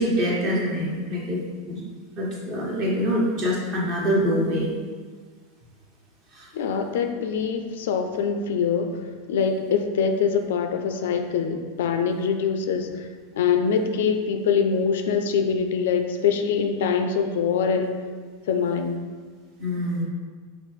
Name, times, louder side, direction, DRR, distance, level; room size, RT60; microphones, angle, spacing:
voice 1, 0.0-1.8 2.2-4.7 6.3-6.5 19.6-20.0, equal, 45° right, -3 dB, 1.2 m, -25 dB
voice 2, 6.5-9.0 9.3-18.0 18.5-19.1, left 6 dB, 65° left, 6 dB, 0.3 m, -24 dB
5.0 x 2.5 x 3.1 m, 1.5 s
figure-of-eight pair, 85°, 0 cm